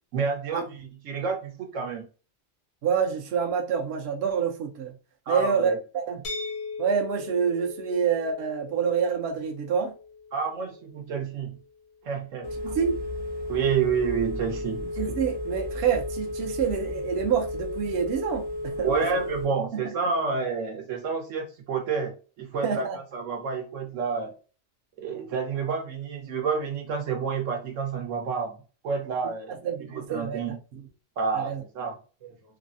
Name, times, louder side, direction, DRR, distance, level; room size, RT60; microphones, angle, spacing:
voice 1, 0.1-2.0 5.3-5.8 10.3-11.5 12.0-12.7 13.5-14.9 18.8-22.9 23.1-24.3 25.0-28.6 28.8-30.6 31.2-32.3, right 5 dB, 80° right, 1.1 m, -29 dB
voice 2, 2.8-4.9 5.3-6.2 6.8-9.9 12.6-13.0 15.0-18.9 19.7-19.8 22.6-23.0 29.6-30.4 31.4-31.6, right 7 dB, 65° right, 0.8 m, -27 dB
sound 1, 6.2-12.0, left 4 dB, 60° left, 0.7 m, -40 dB
Telephone, 12.4-19.4, left 1 dB, 30° left, 0.5 m, -33 dB
3.3 x 2.0 x 2.5 m
omnidirectional pair, 1.3 m